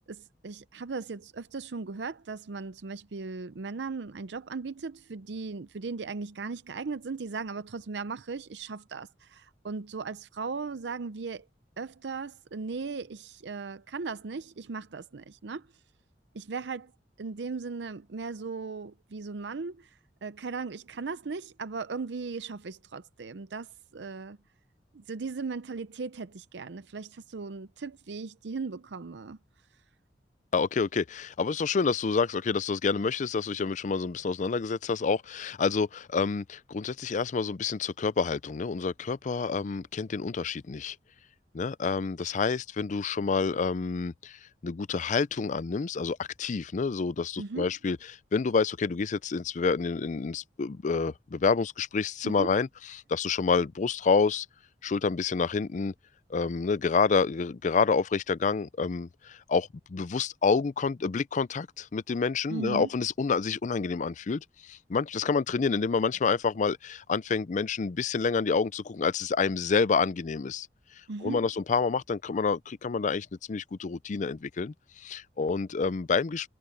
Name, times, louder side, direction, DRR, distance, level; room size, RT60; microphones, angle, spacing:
voice 1, 0.1-11.5 11.8-15.7 16.3-16.9 17.2-19.9 20.2-24.4 24.9-29.4 47.4-47.7 52.2-52.5 62.5-62.9 71.1-71.4, right 4 dB, 85° right, 0.6 m, -37 dB
voice 2, 30.5-41.0 41.5-54.5 54.8-55.9 56.3-70.7 71.2-76.5, left 5 dB, 45° left, 0.4 m, -28 dB
head